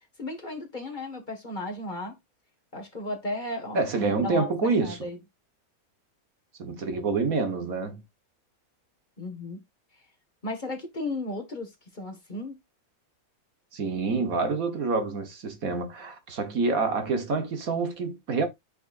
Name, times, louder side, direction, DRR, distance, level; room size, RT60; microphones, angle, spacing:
voice 1, 0.2-2.2 2.7-5.2 9.2-9.6 10.4-12.6, left 2 dB, 30° left, 1.9 m, -35 dB
voice 2, 3.7-5.0 6.6-8.0 13.7-18.5, right 4 dB, 65° right, 1.8 m, -27 dB
9.0 x 5.9 x 2.6 m
omnidirectional pair, 1.6 m